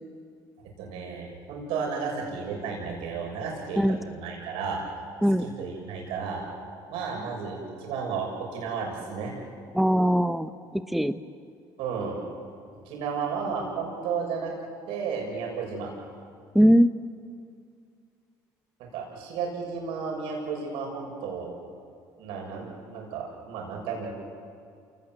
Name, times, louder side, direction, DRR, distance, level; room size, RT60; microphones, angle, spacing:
voice 1, 0.8-3.8 4.1-4.8 5.4-6.4 6.9-9.3 11.8-12.2 12.9-14.5 14.9-15.9 18.8-21.5 22.2-24.1, right 5 dB, 75° right, -1 dB, 7.0 m, -33 dB
voice 2, 9.7-11.2 16.5-16.9, equal, ahead, 11 dB, 0.9 m, -21 dB
29.0 x 19.5 x 7.9 m, 2.3 s
supercardioid pair, 85°, 9 cm